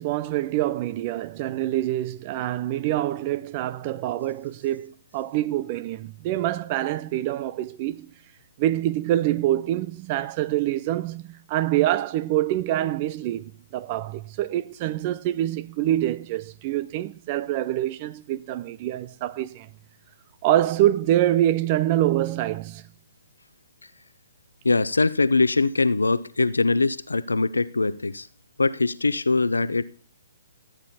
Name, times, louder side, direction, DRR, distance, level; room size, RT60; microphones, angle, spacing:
voice 1, 0.0-8.1 8.6-19.7 20.4-22.9, right 13 dB, 35° right, 0.5 m, -25 dB
voice 2, 24.6-28.3 28.6-29.8, left 3 dB, 85° left, 0.7 m, -22 dB
14.0 x 9.0 x 4.2 m
figure-of-eight pair, 135°, 0 cm